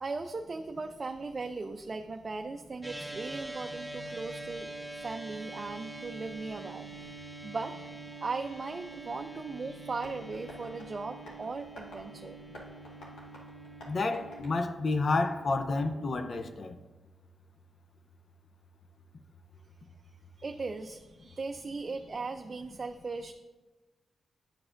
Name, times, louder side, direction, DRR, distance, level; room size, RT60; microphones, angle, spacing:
voice 1, 0.0-4.7 5.0-7.1 7.4-7.7 8.2-12.4 20.4-23.3, right 3 dB, 45° right, 0.4 m, -38 dB
sound 1, 2.8-14.4, right 2 dB, ahead, 0.9 m, -44 dB
Tap, 10.0-15.4, left 1 dB, 80° left, 1.6 m, -52 dB
voice 2, 13.8-16.8, left 3 dB, 55° left, 0.5 m, -30 dB
10.0 x 4.8 x 2.5 m
supercardioid pair, 45°, 0 cm